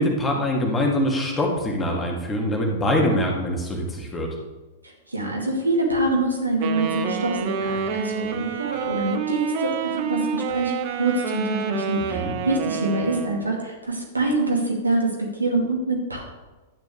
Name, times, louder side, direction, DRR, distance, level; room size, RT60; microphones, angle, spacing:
voice 1, 0.0-4.3 12.1-12.3, left 1 dB, 15° left, -1 dB, 2.0 m, -23 dB
voice 2, 5.1-16.2, right 2 dB, 80° right, -1 dB, 2.3 m, -25 dB
Wind instrument woodwind instrument, 6.6-13.6, right 7 dB, 40° right, 0.8 m, -28 dB
12.0 x 9.2 x 3.3 m, 1.2 s
figure-of-eight pair, 100°, 0 cm